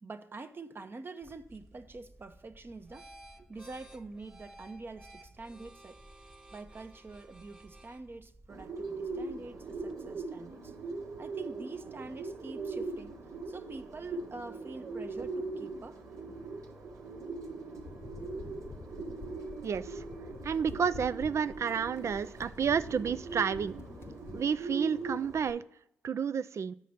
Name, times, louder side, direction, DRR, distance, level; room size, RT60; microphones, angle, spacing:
voice 1, 0.0-3.1 3.4-6.0 6.5-10.7 11.2-13.1 13.5-16.0, right 3 dB, 40° right, 0.8 m, -45 dB
sound 1, 1.2-10.0, right 1 dB, 15° right, 1.2 m, -55 dB
Bird, 8.5-25.5, right 3 dB, 75° right, 1.2 m, -41 dB
sound 2, 17.8-24.4, left 5 dB, 50° left, 0.5 m, -48 dB
voice 2, 19.6-20.0 20.4-23.8 24.3-25.6 26.0-26.7, right 7 dB, 55° right, 0.4 m, -30 dB
8.3 x 5.1 x 5.7 m
supercardioid pair, 45°, 6 cm